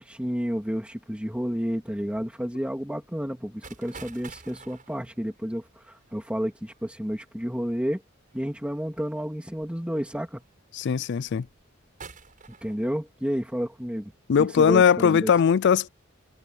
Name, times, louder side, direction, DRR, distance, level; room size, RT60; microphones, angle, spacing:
voice 1, 0.0-8.0 8.3-10.4 12.6-14.1 14.4-15.3, equal, 5° right, 2.6 m, -31 dB
sound 1, 3.6-7.1 8.3-8.8 9.6-9.7 10.2-10.6 11.1-11.6 12.0-13.0, right 5 dB, 40° right, 7.3 m, -48 dB
voice 2, 10.7-11.5 14.3-15.9, left 7 dB, 60° left, 0.4 m, -20 dB
head